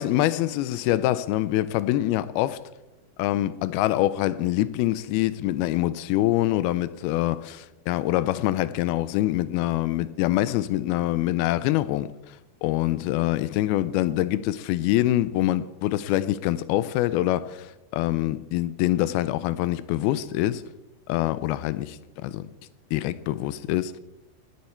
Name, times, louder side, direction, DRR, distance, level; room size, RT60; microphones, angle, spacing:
voice 1, 0.0-2.6 3.2-12.1 12.6-20.6 21.1-22.5 22.9-24.0, left 15 dB, 85° left, 2.4 m, -25 dB
18.5 x 8.6 x 4.5 m
omnidirectional pair, 4.5 m